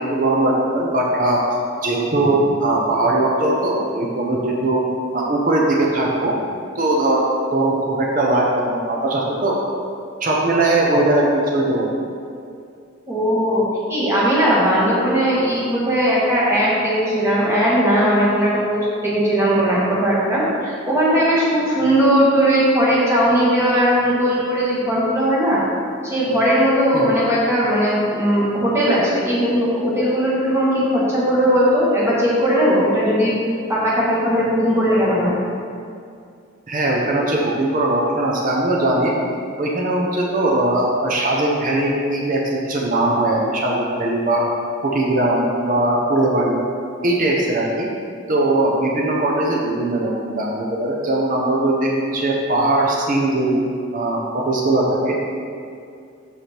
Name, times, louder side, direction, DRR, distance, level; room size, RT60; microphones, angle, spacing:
voice 1, 0.0-1.4 1.8-4.9 5.1-6.4 6.8-9.6 10.2-11.9 26.9-27.1 36.7-39.1 39.6-44.5 44.8-46.6 47.0-47.9 48.3-53.6 53.9-55.2, right 2 dB, 40° right, -2 dB, 0.7 m, -20 dB
voice 2, 13.1-25.6 26.0-33.4 33.7-35.3, equal, 15° right, -8 dB, 1.6 m, -18 dB
6.7 x 4.8 x 4.4 m, 2.3 s
head